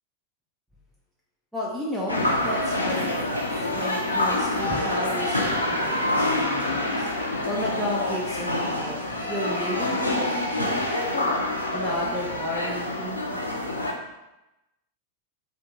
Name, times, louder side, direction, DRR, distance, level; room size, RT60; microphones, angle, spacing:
voice 1, 1.5-7.1 7.5-10.9 11.1-11.4 11.7-13.3, left 1 dB, 5° right, -5 dB, 0.5 m, -33 dB
sound 1, 2.1-13.9, left 1 dB, 85° left, 0.4 m, -26 dB
2.6 x 2.5 x 4.0 m, 0.95 s
figure-of-eight pair, 90°, 0 cm